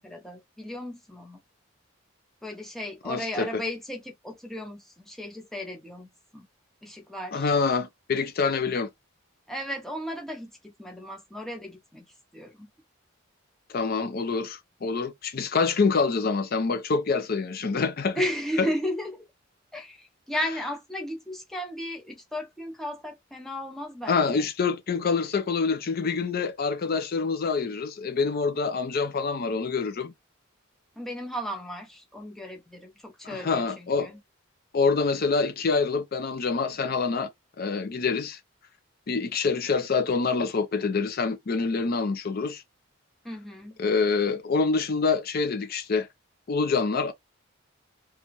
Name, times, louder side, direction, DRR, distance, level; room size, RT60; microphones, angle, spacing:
voice 1, 0.0-1.4 2.4-6.5 6.8-7.5 9.5-12.0 12.3-12.7 18.2-19.3 19.7-24.5 31.0-34.2 43.2-43.8, equal, ahead, 0.7 m, -35 dB
voice 2, 3.1-3.6 7.3-8.9 13.7-18.2 18.6-18.7 24.1-30.1 33.2-34.1 34.7-37.3 37.6-38.4 39.1-42.6 43.8-46.1 46.5-47.1, left 4 dB, 45° left, 0.5 m, -26 dB
2.7 x 2.4 x 2.9 m
head